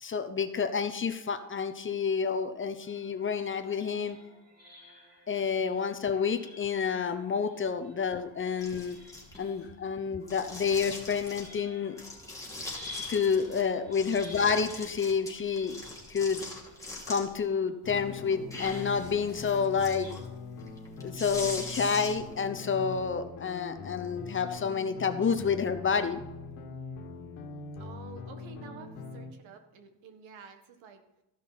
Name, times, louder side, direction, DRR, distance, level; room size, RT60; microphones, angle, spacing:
voice 1, 0.0-4.2 5.3-9.0 9.4-11.9 13.1-15.7 16.1-16.4 17.1-20.1 21.0-26.2, left 6 dB, 25° left, 8 dB, 0.8 m, -29 dB
sound 1, 2.8-17.7 18.7-20.1, left 3 dB, 20° right, 3.6 m, -51 dB
sound 2, 8.6-9.6 10.2-11.6 12.0-13.6 13.9-17.4 17.8-22.4, left 2 dB, 5° left, 2.8 m, -42 dB
sound 3, 17.8-29.3, left 4 dB, 90° left, 1.6 m, -42 dB
voice 2, 27.8-31.0, right 6 dB, 80° right, 7 dB, 1.7 m, -49 dB
14.0 x 6.0 x 5.7 m, 0.97 s
cardioid pair, 125°, 46 cm